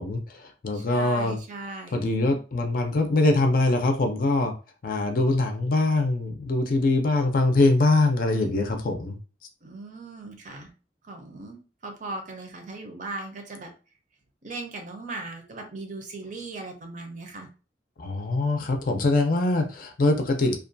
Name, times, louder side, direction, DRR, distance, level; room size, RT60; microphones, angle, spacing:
voice 1, 0.0-1.4 1.9-4.5 4.8-9.2 18.0-20.6, left 2 dB, 50° left, 0.5 m, -23 dB
voice 2, 0.7-2.0 9.6-10.7 11.0-13.7 14.4-17.5, right 2 dB, 45° right, 0.6 m, -38 dB
2.4 x 2.2 x 2.6 m
head